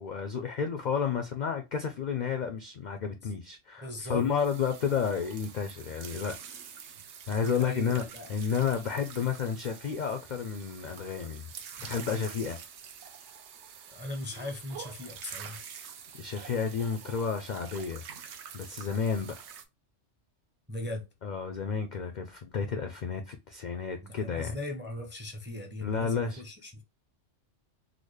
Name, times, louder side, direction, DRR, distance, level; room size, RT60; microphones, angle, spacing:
voice 1, 0.0-6.3 7.3-8.0 8.3-11.5 11.8-12.6 16.2-18.0 18.5-19.4 21.2-24.6 25.8-26.4, left 6 dB, 65° left, 0.4 m, -31 dB
voice 2, 3.8-4.3 7.6-8.3 13.9-15.6 20.7-21.0 24.0-26.8, left 2 dB, 15° right, 0.5 m, -38 dB
sound 1, 4.2-19.6, right 7 dB, 65° right, 0.8 m, -47 dB
3.9 x 2.0 x 3.1 m
omnidirectional pair, 1.3 m